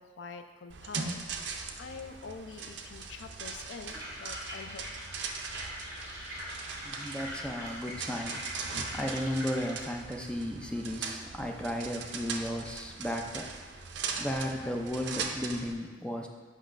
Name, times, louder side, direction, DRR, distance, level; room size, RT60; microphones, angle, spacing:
voice 1, 0.0-4.9, left 5 dB, 70° left, 7 dB, 0.4 m, -46 dB
sound 1, 0.7-15.7, right 5 dB, 65° right, 0.5 m, -40 dB
sound 2, 3.9-9.9, equal, 15° right, 1.7 m, -42 dB
voice 2, 6.8-13.5 14.2-16.3, equal, 5° left, 1 dB, 0.4 m, -35 dB
8.1 x 5.5 x 2.5 m, 1.5 s
head